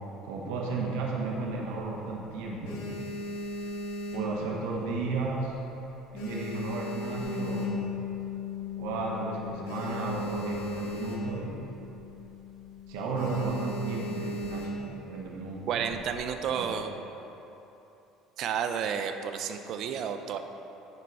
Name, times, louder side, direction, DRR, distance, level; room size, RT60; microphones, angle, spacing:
voice 1, 0.2-3.1 4.1-5.5 6.1-7.8 8.7-11.7 12.9-15.8 16.5-16.6, right 3 dB, 90° right, -2 dB, 1.1 m, -33 dB
sound 1, 1.4-2.1 2.5-4.9 5.2-5.6 5.9-8.1 8.6-8.7 8.9-9.0 9.3-11.5 11.8-12.1 12.4-12.7 13.1-15.0 15.7-16.3, equal, 90° left, 1.3 m, -37 dB
Bass guitar, 7.2-13.5, left 9 dB, 10° right, 1.7 m, -39 dB
voice 2, 15.7-16.9 18.4-20.4, right 7 dB, 60° right, 7 dB, 0.5 m, -31 dB
10.5 x 4.6 x 4.1 m, 2.9 s
cardioid pair, 110°, 0 cm